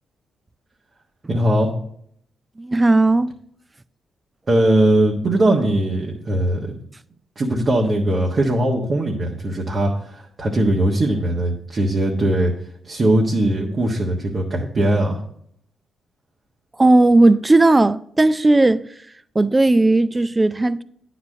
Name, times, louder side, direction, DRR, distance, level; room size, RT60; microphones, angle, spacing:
voice 1, 1.3-1.7 4.5-6.7 7.4-12.5 12.8-15.2, right 1 dB, 45° right, 1.3 m, -20 dB
voice 2, 2.6-3.3 16.8-18.9 19.4-20.8, right 2 dB, 25° right, 0.4 m, -15 dB
9.4 x 4.1 x 6.3 m
supercardioid pair, 50°, 0 cm